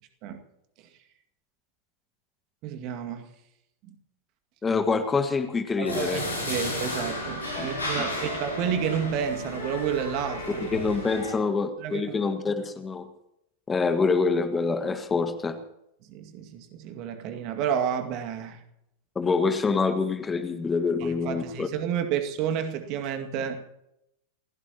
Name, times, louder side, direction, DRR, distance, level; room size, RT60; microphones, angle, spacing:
voice 1, 2.6-3.3 3.9-4.0 5.8-10.9 11.8-12.2 16.1-18.6 21.0-23.7, right 8 dB, 40° right, 6 dB, 2.1 m, -31 dB
voice 2, 4.6-6.2 7.5-7.7 8.0-8.1 10.6-13.1 13.7-15.6 19.1-21.7, left 4 dB, 15° left, 8 dB, 1.7 m, -26 dB
sound 1, 5.8-11.3, left 1 dB, 75° left, 6.7 m, -33 dB
29.5 x 16.5 x 3.0 m, 0.82 s
figure-of-eight pair, 90°, 0 cm